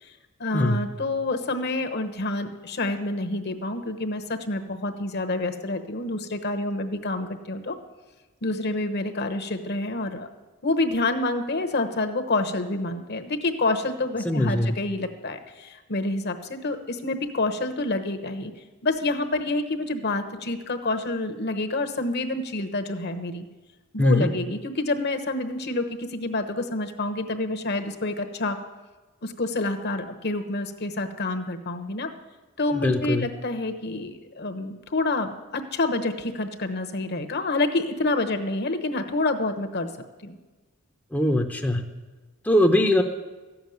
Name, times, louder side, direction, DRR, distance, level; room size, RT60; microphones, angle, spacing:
voice 1, 0.0-7.8 8.4-10.3 10.6-18.5 18.8-23.4 23.9-28.6 29.2-32.1 32.6-39.9 40.2-40.4, left 2 dB, 50° left, 7 dB, 1.0 m, -28 dB
voice 2, 14.2-14.7 24.0-24.3 32.7-33.2 41.1-41.8 42.4-43.0, left 1 dB, 5° left, 3 dB, 0.7 m, -21 dB
14.5 x 7.1 x 9.3 m, 1.2 s
head